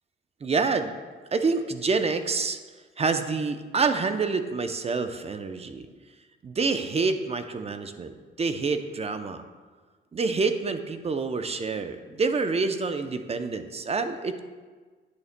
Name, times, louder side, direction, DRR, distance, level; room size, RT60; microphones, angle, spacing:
voice 1, 0.4-1.0 1.3-2.6 3.0-5.9 6.4-9.4 10.1-14.4, right 4 dB, 30° right, 8 dB, 0.6 m, -27 dB
9.5 x 8.3 x 2.2 m, 1.4 s
cardioid pair, 90°, 20 cm